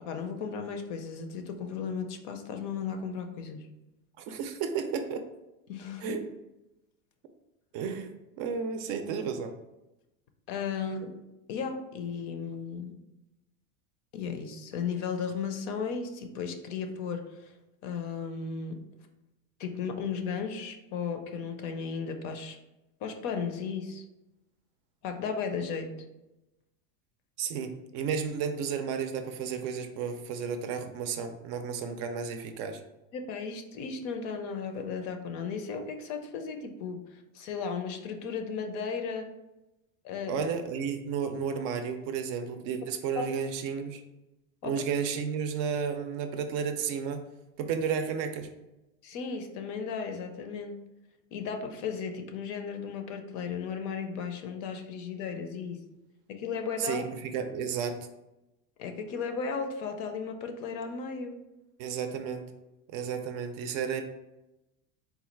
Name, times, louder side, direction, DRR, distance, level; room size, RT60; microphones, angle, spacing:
voice 1, 0.1-3.7 5.7-6.2 10.5-11.1 11.5-13.0 14.1-17.5 17.8-18.8 19.6-22.6 23.0-24.0 25.0-25.9 33.1-39.3 40.0-40.4 44.6-44.7 49.0-50.8 51.3-55.8 56.3-57.1 58.8-61.4, left 6 dB, 45° left, 6 dB, 0.5 m, -35 dB
voice 2, 4.2-5.2 6.0-6.2 7.7-9.5 27.4-32.8 40.3-44.0 44.6-47.2 47.6-48.5 56.8-58.0 61.8-62.5 62.9-64.0, right 6 dB, 50° right, 7 dB, 0.5 m, -32 dB
4.0 x 2.3 x 4.4 m, 0.96 s
supercardioid pair, 155°, 40 cm